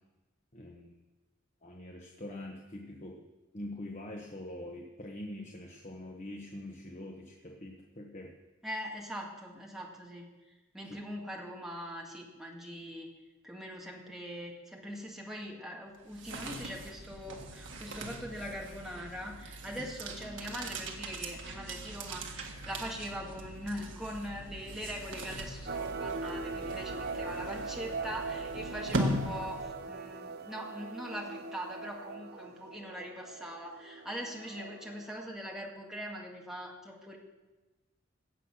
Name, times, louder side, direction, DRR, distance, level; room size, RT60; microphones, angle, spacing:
voice 1, 0.5-0.9 1.6-3.2 3.5-8.3 10.8-11.0, left 1 dB, 35° left, 1 dB, 1.1 m, -44 dB
voice 2, 8.6-10.3 10.7-13.1 13.4-37.2, equal, ahead, -2 dB, 1.9 m, -42 dB
sound 1, 15.9-30.0, right 1 dB, 70° right, 1.7 m, -40 dB
sound 2, 25.7-35.2, right 4 dB, 50° right, 0.7 m, -41 dB
16.0 x 7.9 x 6.3 m, 1.2 s
head